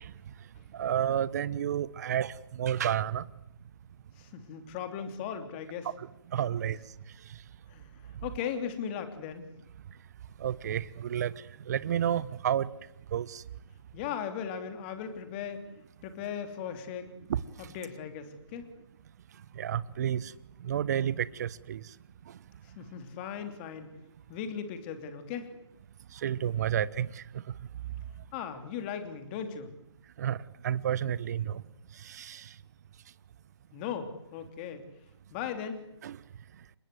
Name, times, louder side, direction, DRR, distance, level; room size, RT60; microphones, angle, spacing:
voice 1, 0.7-3.3 6.0-6.1 6.3-6.8 10.4-11.3 11.7-12.7 13.1-13.4 17.3-17.4 19.5-20.3 20.6-21.8 26.1-27.2 30.2-30.4 30.6-31.6 32.0-32.4 36.0-36.2, right 10 dB, 35° right, 19 dB, 1.1 m, -30 dB
voice 2, 4.2-5.9 7.7-7.9 8.2-9.5 13.9-15.6 16.0-17.1 17.6-18.6 22.6-23.9 24.3-25.5 28.3-29.7 33.7-34.8 35.3-35.8, left 8 dB, 25° left, 8 dB, 3.2 m, -37 dB
29.5 x 25.0 x 8.0 m, 0.79 s
figure-of-eight pair, 150°, 15 cm